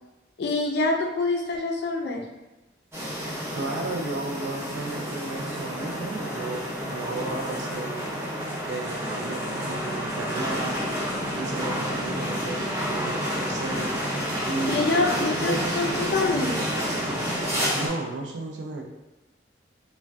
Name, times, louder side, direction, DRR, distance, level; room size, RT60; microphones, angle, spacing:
voice 1, 0.4-2.3 14.7-16.7, left 3 dB, 60° left, 1 dB, 0.3 m, -26 dB
sound 1, 2.9-17.9, equal, 15° right, 0.5 m, -29 dB
voice 2, 3.5-8.1 8.6-10.8 11.3-13.9 14.4-14.8 15.1-17.2 17.7-18.8, right 2 dB, 75° right, 1 dB, 0.4 m, -34 dB
2.5 x 2.1 x 2.2 m, 1.0 s
head